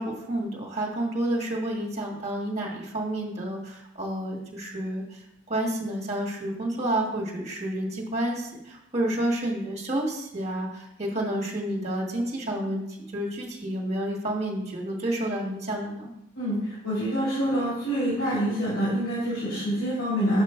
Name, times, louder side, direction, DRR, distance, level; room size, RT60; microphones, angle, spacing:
voice 1, 0.0-12.8 13.1-16.1, right 1 dB, 35° right, -2 dB, 1.7 m, -30 dB
voice 2, 16.3-20.4, equal, 80° left, -7 dB, 2.9 m, -26 dB
7.1 x 5.2 x 4.4 m, 0.84 s
head